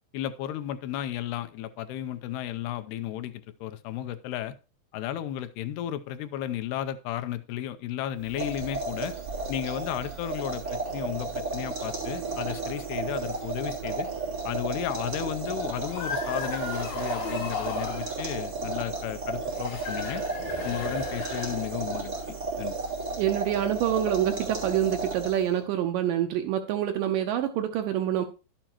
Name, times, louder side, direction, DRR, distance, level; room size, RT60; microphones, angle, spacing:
voice 1, 0.1-4.6 4.9-9.2 9.5-14.1 14.4-20.2 20.6-22.8, left 12 dB, 85° left, 10 dB, 2.7 m, -34 dB
sound 1, 8.2-25.6, right 3 dB, 25° right, 3.0 m, -33 dB
sound 2, 12.0-17.8, right 9 dB, 60° right, 3.3 m, -45 dB
sound 3, 15.7-18.1 19.5-22.0, left 5 dB, 45° left, 4.0 m, -36 dB
voice 2, 23.2-28.3, right 11 dB, 80° right, 6 dB, 2.0 m, -26 dB
11.0 x 8.9 x 2.9 m, 0.32 s
omnidirectional pair, 4.6 m